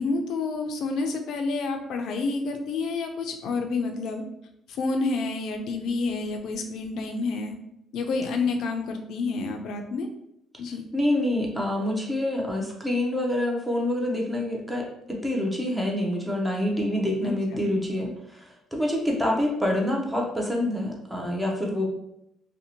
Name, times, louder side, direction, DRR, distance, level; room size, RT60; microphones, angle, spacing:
voice 1, 0.0-4.2 4.7-7.6 7.9-10.1 10.6-10.8 17.2-17.7, left 3 dB, 70° left, 5 dB, 0.4 m, -29 dB
voice 2, 10.9-21.9, left 1 dB, 5° right, -1 dB, 0.5 m, -27 dB
2.6 x 2.1 x 2.7 m, 0.78 s
cardioid pair, 120°, 0 cm